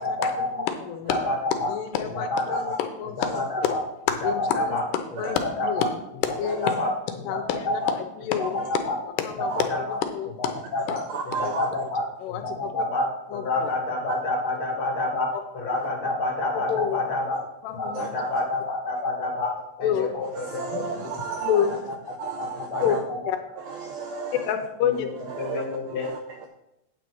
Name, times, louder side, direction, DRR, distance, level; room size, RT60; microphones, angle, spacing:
voice 1, 0.0-0.5 1.1-1.7 2.1-2.8 3.2-3.8 4.2-4.8 5.2-5.9 6.4-6.9 7.3-7.9 8.5-9.0 9.4-10.0 10.4-17.4 17.8-21.8 22.2-23.3 24.8-25.1 25.4-26.1, left 2 dB, 45° left, -1 dB, 3.0 m, -28 dB
voice 2, 0.7-1.2 1.7-3.3 3.6-3.7 4.2-4.8 5.2-5.8 6.4-6.7 7.3-7.8 8.2-8.6 9.2-10.4 10.9-11.0 11.4-11.5 12.2-12.4 13.3-13.7 16.7-17.0 17.6-18.1 19.8-20.1 20.7-22.0 22.8-23.0 23.3-23.4 24.5-25.1, left 9 dB, 80° left, 7 dB, 2.8 m, -28 dB
voice 3, 11.1-11.7 18.0-18.1 20.4-21.8 22.2-22.9 23.7-24.5 25.3-25.6 26.0-26.5, right 6 dB, 80° right, 5 dB, 2.1 m, -33 dB
9.3 x 8.4 x 4.6 m, 0.86 s
omnidirectional pair, 4.9 m